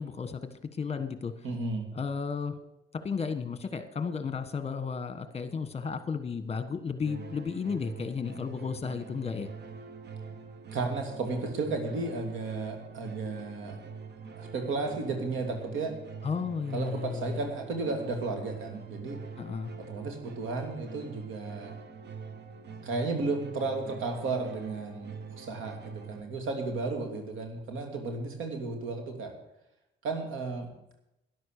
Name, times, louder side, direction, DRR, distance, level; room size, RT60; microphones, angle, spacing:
voice 1, 0.0-1.5 1.9-2.6 2.9-9.5 16.2-17.4 19.4-19.7, left 5 dB, 30° left, 11 dB, 1.5 m, -33 dB
voice 2, 1.4-1.9 10.7-13.8 14.4-15.9 16.7-19.2 19.9-21.7 22.8-29.3 30.0-30.7, right 3 dB, 85° right, 4 dB, 2.8 m, -33 dB
sound 1, 7.0-26.2, right 5 dB, 60° right, 1.4 m, -45 dB
12.5 x 11.0 x 6.7 m, 0.87 s
cardioid pair, 90°, 20 cm